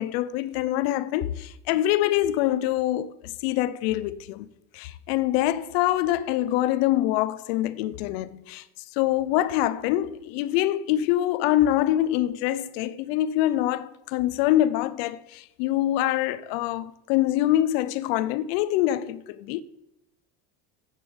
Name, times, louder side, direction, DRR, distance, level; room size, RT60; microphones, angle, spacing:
voice 1, 0.0-4.5 4.7-8.6 9.0-19.6, left 13 dB, 75° left, 0.6 m, -25 dB
8.3 x 6.9 x 6.9 m
cardioid pair, 175°, 31 cm